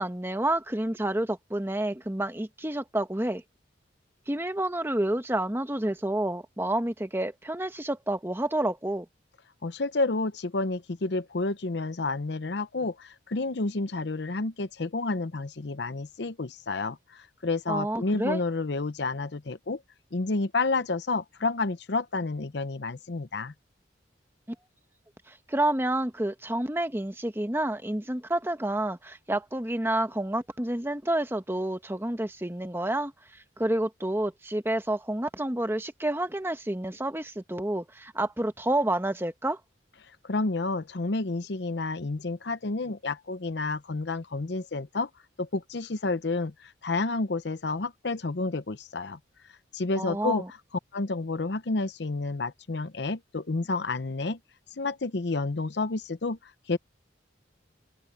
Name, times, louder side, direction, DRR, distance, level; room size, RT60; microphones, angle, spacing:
voice 1, 0.0-3.4 4.3-9.0 17.7-18.4 25.3-33.1 33.6-39.6 50.0-50.5, right 1 dB, 10° right, 1.1 m, -29 dB
voice 2, 9.6-19.8 20.1-23.5 40.2-45.1 45.4-49.2 49.7-50.4 50.9-54.4 54.7-56.8, left 3 dB, 60° left, 0.7 m, -30 dB
open air
head